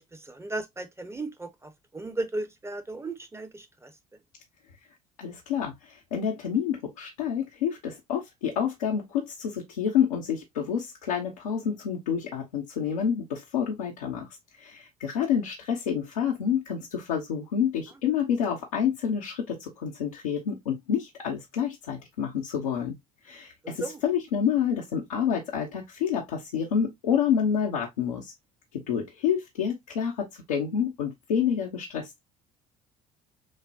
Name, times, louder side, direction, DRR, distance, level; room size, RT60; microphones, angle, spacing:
voice 1, 0.0-3.9 23.6-24.0, right 2 dB, 15° right, 0.9 m, -36 dB
voice 2, 5.2-14.3 14.6-22.9 23.2-28.3 28.7-32.2, left 8 dB, 80° left, 0.8 m, -28 dB
6.2 x 2.2 x 2.5 m
figure-of-eight pair, 55°, 19 cm